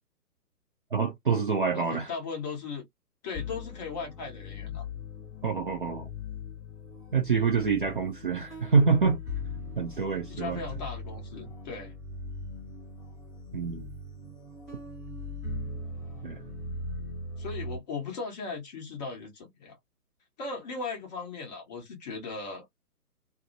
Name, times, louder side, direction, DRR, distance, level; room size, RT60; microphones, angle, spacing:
voice 1, 0.9-2.1 5.4-6.1 7.1-9.2 9.8-10.6 13.5-13.9 16.2-16.4, right 5 dB, 35° right, 0.5 m, -26 dB
voice 2, 1.7-2.9 3.2-4.8 10.3-11.9 17.4-19.8 20.4-22.6, left 4 dB, 25° left, 1.1 m, -37 dB
sound 1, 3.3-17.8, left 3 dB, ahead, 0.7 m, -40 dB
2.8 x 2.1 x 2.6 m
figure-of-eight pair, 135°, 47 cm